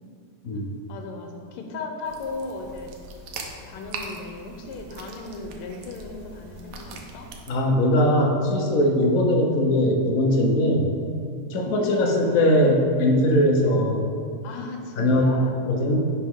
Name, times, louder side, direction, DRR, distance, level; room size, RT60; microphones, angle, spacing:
voice 1, 0.9-2.9 3.7-7.3 9.1-9.3 11.5-12.5 13.6-13.8 14.4-15.6, left 3 dB, 85° left, 3 dB, 1.6 m, -35 dB
sound 1, 2.0-7.5, right 3 dB, 90° right, 1.7 m, -41 dB
voice 2, 7.5-10.9 11.5-14.1 15.0-15.4 15.7-16.0, left 1 dB, 60° left, 1 dB, 0.9 m, -20 dB
10.5 x 4.4 x 3.6 m, 2.3 s
omnidirectional pair, 2.4 m